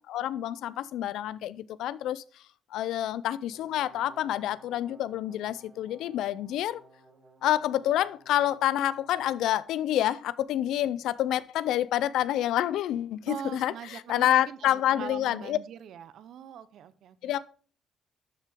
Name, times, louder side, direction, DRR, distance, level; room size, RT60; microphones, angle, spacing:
voice 1, 0.0-2.2 2.7-6.8 7.4-15.6 17.2-17.4, left 12 dB, 85° left, 0.4 m, -28 dB
Brass instrument, 3.5-9.3, right 2 dB, 50° right, 3.1 m, -56 dB
voice 2, 13.3-17.3, right 9 dB, 75° right, 0.7 m, -42 dB
12.5 x 4.5 x 3.5 m
cardioid pair, 90°, 0 cm